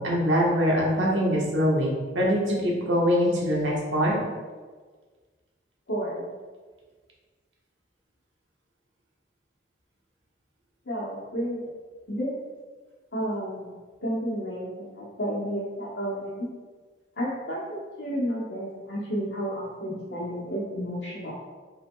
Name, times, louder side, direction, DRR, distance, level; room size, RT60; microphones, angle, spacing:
voice 1, 0.0-4.2, equal, 85° right, -3 dB, 1.2 m, -23 dB
voice 2, 5.9-6.3 10.8-11.6 12.1-12.3 13.1-13.8 14.0-16.5 17.2-21.3, equal, 80° left, -7 dB, 1.0 m, -31 dB
5.8 x 3.9 x 2.2 m, 1.4 s
head